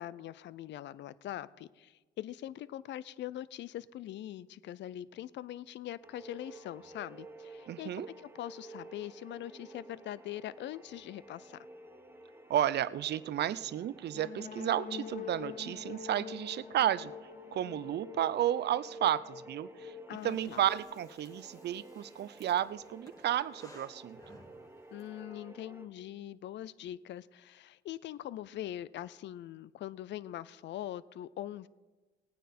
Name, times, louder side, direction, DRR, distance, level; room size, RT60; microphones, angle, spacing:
voice 1, 0.0-8.0 8.4-11.6 20.1-20.6 24.9-31.7, left 12 dB, 65° left, 19 dB, 0.4 m, -42 dB
sound 1, 6.0-25.9, right 2 dB, 10° right, 1.0 m, -53 dB
voice 2, 7.7-8.1 12.5-17.1 17.5-24.4, right 11 dB, 60° right, 17 dB, 0.5 m, -32 dB
sound 2, 14.1-21.8, left 9 dB, 40° left, 0.8 m, -47 dB
Breathing, 20.1-25.1, left 1 dB, 15° left, 2.1 m, -58 dB
17.5 x 9.3 x 4.2 m, 1.2 s
cardioid pair, 90°, 20 cm